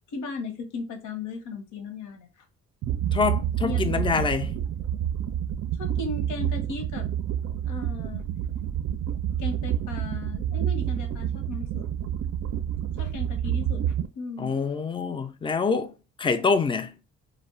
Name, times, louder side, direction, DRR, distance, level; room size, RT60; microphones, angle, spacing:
voice 1, 0.1-2.4 3.6-4.5 5.8-7.1 7.6-8.2 9.4-11.8 13.0-13.8 14.1-14.5, left 3 dB, 85° left, 0.8 m, -36 dB
sound 1, 2.8-14.1, right 10 dB, 55° right, 0.4 m, -28 dB
voice 2, 3.1-4.5 14.4-17.0, left 5 dB, 15° left, 0.3 m, -26 dB
2.2 x 2.0 x 3.6 m
cardioid pair, 90°, 30 cm